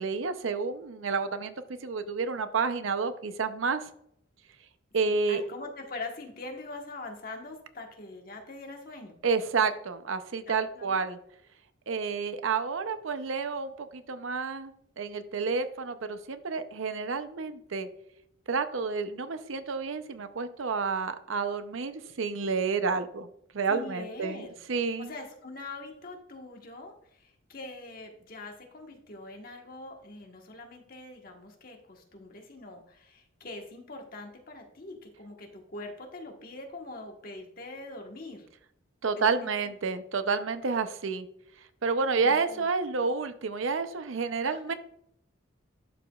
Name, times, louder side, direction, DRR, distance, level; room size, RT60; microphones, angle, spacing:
voice 1, 0.0-1.5 1.8-3.9 4.9-5.4 9.2-11.2 11.9-17.9 18.5-23.3 23.5-25.1 39.0-41.3 41.8-44.7, right 4 dB, 80° right, 10 dB, 0.6 m, -30 dB
voice 2, 5.0-9.2 10.5-11.0 23.7-24.6 25.0-38.5 39.2-39.5 42.1-42.7 44.4-44.7, left 2 dB, 45° left, 2 dB, 1.3 m, -43 dB
12.0 x 5.0 x 2.4 m, 0.72 s
head